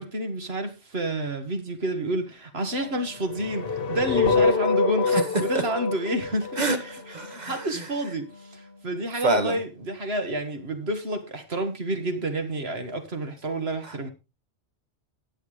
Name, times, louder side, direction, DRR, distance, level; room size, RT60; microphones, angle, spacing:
voice 1, 0.0-14.1, right 1 dB, 65° right, 2.0 m, -30 dB
Wind instrument woodwind instrument, 2.6-9.1, left 3 dB, 35° left, 4.0 m, -49 dB
sound 1, 3.3-7.4, left 4 dB, 55° left, 1.8 m, -25 dB
voice 2, 7.1-7.6 9.2-9.6, right 2 dB, 40° right, 1.6 m, -25 dB
19.0 x 6.5 x 3.3 m
omnidirectional pair, 1.1 m